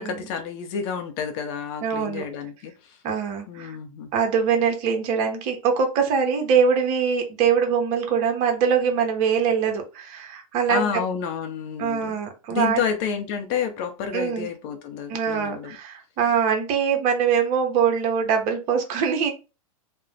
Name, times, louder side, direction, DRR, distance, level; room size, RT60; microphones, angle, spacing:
voice 1, 0.0-3.0 3.5-4.1 10.7-12.2 12.5-15.8, left 7 dB, 45° left, 6 dB, 0.6 m, -29 dB
voice 2, 1.8-2.2 3.0-3.7 4.1-10.9 11.8-12.8 14.1-14.5 15.1-19.3, right 6 dB, 40° right, 4 dB, 0.8 m, -23 dB
2.4 x 2.1 x 3.1 m, 0.30 s
hypercardioid pair, 110°, 18 cm